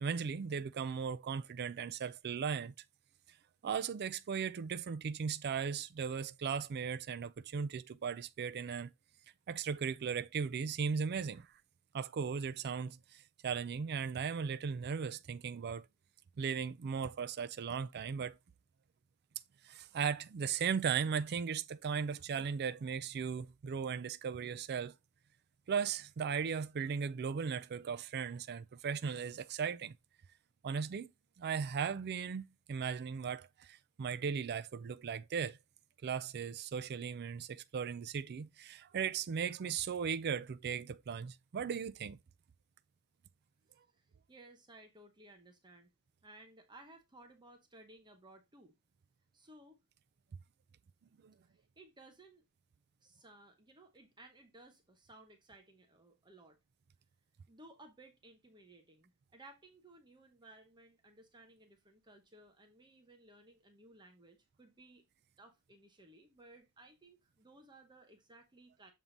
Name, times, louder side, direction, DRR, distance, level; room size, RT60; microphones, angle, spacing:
voice 1, 0.0-2.7 3.6-8.9 9.5-11.5 11.9-15.9 16.4-18.4 19.6-24.9 25.7-30.0 30.6-31.1 31.4-32.4 32.7-35.6 36.0-42.2 51.2-51.3, right 6 dB, 45° right, 0.4 m, -37 dB
voice 2, 43.9-45.9 46.2-48.7 49.3-49.8 51.4-52.4 53.0-56.6 57.5-65.0 65.4-68.9, right 2 dB, 20° right, 0.9 m, -59 dB
7.2 x 3.7 x 3.9 m
head